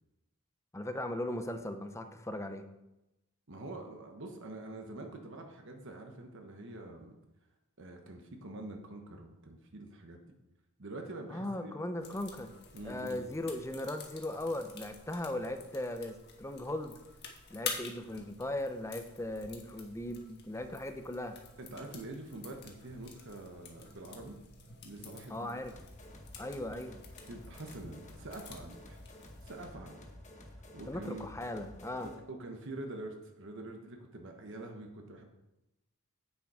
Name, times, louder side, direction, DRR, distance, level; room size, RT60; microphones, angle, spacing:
voice 1, 0.7-2.7 11.3-12.5 12.8-16.9 17.5-21.4 25.3-25.7 26.4-27.0 30.9-32.1, left 1 dB, 15° left, 7 dB, 0.6 m, -38 dB
voice 2, 3.5-7.2 7.8-10.2 10.8-11.7 12.7-13.3 21.6-24.4 24.8-25.6 27.3-29.0 29.4-30.0 30.7-31.3 32.0-35.3, right 2 dB, 55° right, 3 dB, 1.1 m, -45 dB
sound 1, 12.0-29.7, left 5 dB, 50° left, 1.4 m, -49 dB
sound 2, 25.8-32.3, left 1 dB, 30° left, 1.1 m, -51 dB
8.7 x 7.0 x 4.9 m, 0.94 s
head